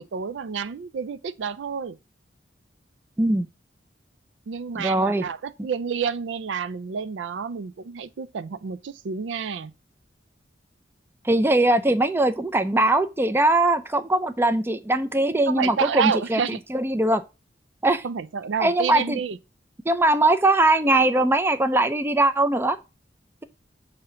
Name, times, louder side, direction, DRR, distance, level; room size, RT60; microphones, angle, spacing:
voice 1, 0.0-2.0 4.5-9.7 15.5-16.6 18.0-19.4, right 6 dB, 85° right, 0.4 m, -29 dB
voice 2, 4.8-5.2 11.2-16.4 16.7-17.2 17.8-18.0 18.6-19.2 19.9-22.8, right 2 dB, 15° right, 0.4 m, -21 dB
6.7 x 2.7 x 5.5 m
head